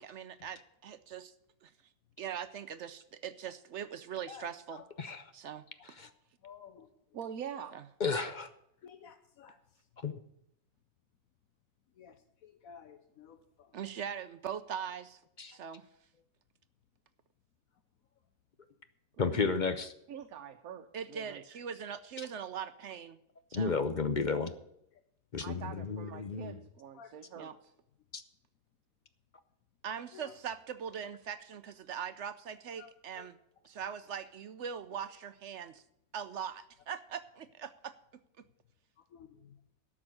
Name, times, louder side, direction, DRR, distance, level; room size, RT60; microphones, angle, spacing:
voice 1, 0.0-1.3 1.6-1.7 2.2-4.8 5.3-5.7 7.7-7.8 13.7-15.2 15.5-15.9 20.9-23.2 23.5-23.7 27.3-27.5 29.8-33.4 33.6-35.8 36.1-37.9 38.4-38.5, right 8 dB, 65° right, 13 dB, 0.9 m, -41 dB
voice 2, 4.3-4.8 6.4-6.9 8.8-9.6 12.0-13.7 19.2-19.3 26.9-27.1 30.1-30.3 32.8-33.3 34.9-35.0 39.1-39.6, left 7 dB, 75° left, 8 dB, 1.3 m, -53 dB
voice 3, 7.1-7.7 8.2-8.3 19.1-19.5 20.1-21.4 25.4-27.7, right 8 dB, 85° right, 5 dB, 1.2 m, -45 dB
voice 4, 8.0-8.5 10.0-10.1 15.4-15.6 19.2-19.9 22.2-22.3 23.5-24.5 25.3-26.6 28.1-28.2, left 4 dB, 45° left, 10 dB, 0.7 m, -32 dB
12.0 x 6.2 x 8.6 m, 0.77 s
omnidirectional pair, 1.5 m